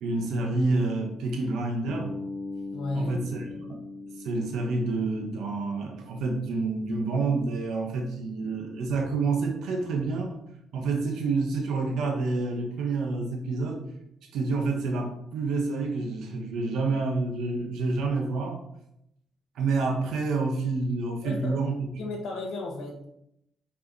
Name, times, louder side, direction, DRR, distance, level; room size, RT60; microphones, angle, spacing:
voice 1, 0.0-2.1 2.9-3.8 4.2-10.4 10.7-13.9 14.3-18.6 19.5-21.9, right 3 dB, 80° right, 2 dB, 1.2 m, -28 dB
Bass guitar, 1.9-6.0, left 2 dB, 20° left, 1.1 m, -39 dB
voice 2, 2.7-3.6 21.2-21.5 22.0-23.2, left 2 dB, 75° left, 1 dB, 1.7 m, -34 dB
5.6 x 4.9 x 4.1 m, 0.78 s
cardioid pair, 90°, 0 cm